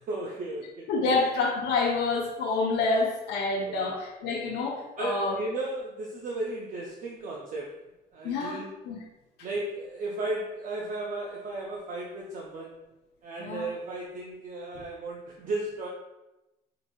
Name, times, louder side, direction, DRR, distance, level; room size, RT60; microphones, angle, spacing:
voice 1, 0.1-0.9 1.1-1.2 2.9-3.0 3.7-4.0 5.0-7.8 8.1-8.7 9.4-12.8 13.2-15.9, right 2 dB, 50° right, -3 dB, 0.5 m, -35 dB
voice 2, 0.9-5.4 8.2-9.0 13.4-13.7, left 3 dB, 85° left, -1 dB, 0.7 m, -28 dB
4.7 x 2.6 x 2.3 m, 0.97 s
cardioid pair, 110°, 17 cm